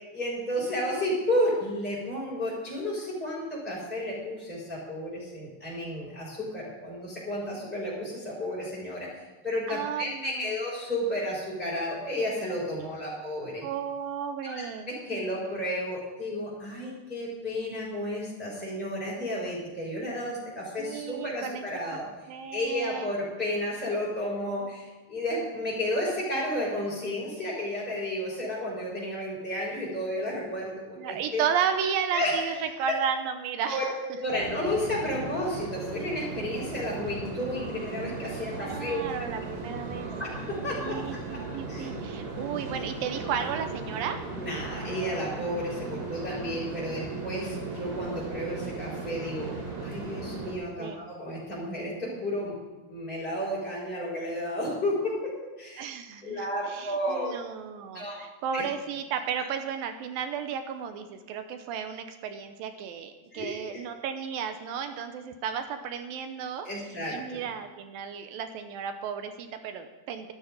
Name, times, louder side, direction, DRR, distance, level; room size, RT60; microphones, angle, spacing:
voice 1, 0.1-9.1 9.4-13.6 14.4-22.1 22.5-31.4 32.1-32.6 33.6-39.0 40.2-41.0 41.7-41.9 44.4-49.5 49.8-52.6 52.9-55.2 55.6-55.8 56.2-57.4 57.9-58.1 58.5-58.6 59.4-59.5 63.3-63.8 66.6-67.4, left 1 dB, ahead, -8 dB, 4.8 m, -32 dB
voice 2, 9.7-10.5 13.0-13.1 13.6-15.3 20.8-21.6 21.9-22.0 22.3-23.1 31.0-33.9 38.5-40.1 40.8-44.2 50.8-51.0 55.8-66.7 67.1-70.3, right 7 dB, 75° right, 8 dB, 2.4 m, -33 dB
sound 1, 34.3-50.6, right 3 dB, 45° right, 4.4 m, -37 dB
13.0 x 12.5 x 5.2 m, 1.2 s
omnidirectional pair, 4.6 m